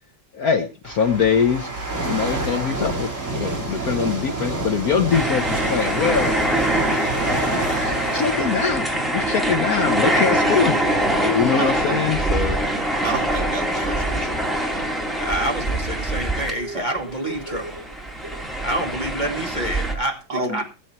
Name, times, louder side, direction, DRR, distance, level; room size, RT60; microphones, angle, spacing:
voice 1, 0.3-1.7 2.0-6.3 7.8-12.6, left 6 dB, 55° left, 8 dB, 1.2 m, -23 dB
sound 1, 0.8-10.8 11.4-11.6 12.4-15.4 16.1-17.9 18.2-18.4, right 2 dB, 35° right, 3.8 m, -30 dB
sound 2, 5.1-17.0 17.3-19.9, right 1 dB, ahead, 2.2 m, -24 dB
voice 2, 13.0-14.5 16.7-16.8 20.3-20.6, right 2 dB, 55° right, 2 dB, 2.4 m, -29 dB
voice 3, 15.2-17.8 18.6-20.6, right 1 dB, 25° left, 3 dB, 1.8 m, -27 dB
17.5 x 7.7 x 4.4 m, 0.34 s
omnidirectional pair, 2.2 m